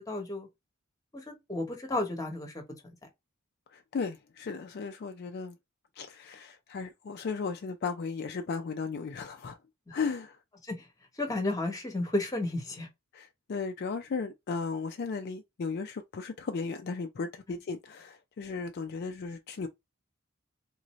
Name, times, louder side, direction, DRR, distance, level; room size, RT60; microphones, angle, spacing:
voice 1, 0.1-0.5 1.3-3.0 10.7-10.9 11.2-12.9 17.5-17.6, left 2 dB, 15° left, 1.0 m, -33 dB
voice 2, 3.7-5.6 6.0-9.6 9.9-10.4 13.1-19.7, left 4 dB, 50° left, 0.4 m, -35 dB
3.7 x 2.6 x 3.0 m
head